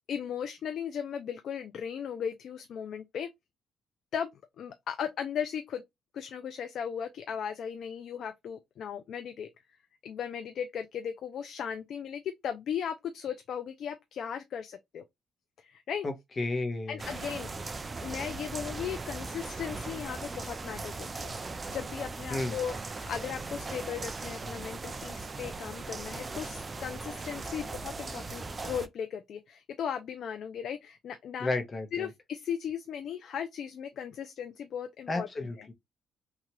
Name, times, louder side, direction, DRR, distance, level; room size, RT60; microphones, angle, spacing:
voice 1, 0.0-3.3 4.1-4.3 4.6-5.8 6.1-9.5 10.0-15.0 15.6-16.1 16.9-17.5 18.0-21.3 21.7-22.8 23.1-31.5 31.9-35.5, left 8 dB, 65° left, 0.4 m, -37 dB
voice 2, 16.0-17.0 22.3-22.6 31.4-32.1 35.1-35.7, left 2 dB, 35° left, 0.8 m, -32 dB
sound 1, 17.0-28.9, right 3 dB, 30° right, 0.4 m, -39 dB
3.0 x 2.3 x 2.8 m
cardioid pair, 90°, 0 cm